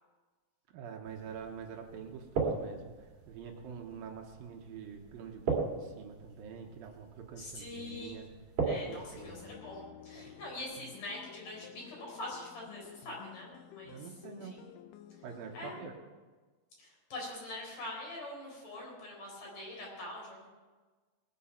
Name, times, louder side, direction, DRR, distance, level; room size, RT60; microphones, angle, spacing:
voice 1, 0.7-2.9 3.3-8.3 8.7-9.5 10.1-10.4 13.9-14.6 15.2-15.9, right 6 dB, 70° right, 3 dB, 2.9 m, -46 dB
sound 1, 1.0-9.5, right 4 dB, 50° right, 3.4 m, -39 dB
voice 2, 7.4-8.2 8.6-14.6 15.5-15.8 16.8-20.5, left 1 dB, 55° left, -2 dB, 6.0 m, -44 dB
sound 2, 9.2-15.9, left 11 dB, 75° left, 2.1 m, -52 dB
19.5 x 9.2 x 5.9 m, 1.4 s
omnidirectional pair, 4.4 m